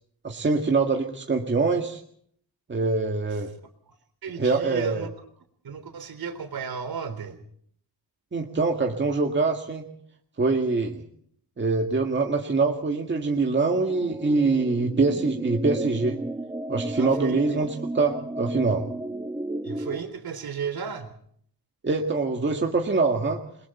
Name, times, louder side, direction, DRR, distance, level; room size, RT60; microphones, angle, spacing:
voice 1, 0.2-2.0 2.7-3.5 4.4-5.1 8.3-9.8 10.4-11.1 11.6-16.2 16.7-17.7 17.9-18.8 21.8-23.4, right 3 dB, 30° right, 1 dB, 1.9 m, -24 dB
voice 2, 4.2-5.1 5.6-7.4 17.0-17.6 19.6-21.1, right 6 dB, 65° right, 7 dB, 3.7 m, -34 dB
sound 1, 13.9-20.0, right 2 dB, 10° right, 1.1 m, -33 dB
29.0 x 21.5 x 4.3 m, 0.63 s
wide cardioid pair, 160°, 40 cm